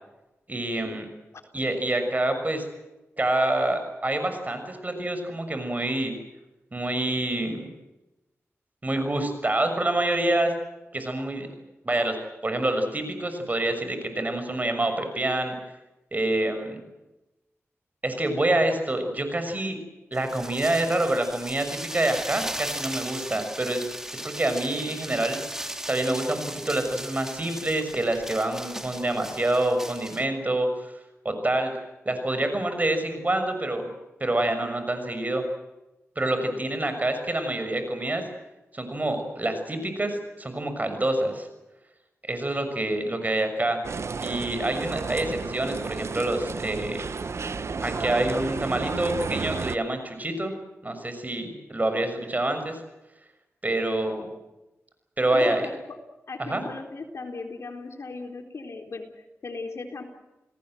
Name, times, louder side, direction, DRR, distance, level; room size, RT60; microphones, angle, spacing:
voice 1, 0.5-1.0 1.5-2.6 3.2-6.1 6.7-7.7 8.8-10.5 10.9-11.5 11.8-15.5 16.1-16.8 18.0-19.8 20.1-23.8 24.1-25.4 25.9-30.9 31.2-31.8 32.0-33.8 34.2-35.4 36.2-38.2 38.7-41.5 42.3-43.8 44.2-47.0 47.8-50.5 50.8-52.8 53.6-54.3 55.2-55.7 56.4-56.6, right 1 dB, 30° right, 7 dB, 6.4 m, -27 dB
sound 1, 20.1-30.2, right 1 dB, 10° right, 3.0 m, -37 dB
sound 2, 43.8-49.8, right 4 dB, 65° right, 1.1 m, -32 dB
voice 2, 53.7-54.4 55.3-56.0 56.3-60.0, left 3 dB, 65° left, 4 dB, 4.0 m, -37 dB
29.5 x 18.5 x 7.9 m, 1.0 s
cardioid pair, 65°, 5 cm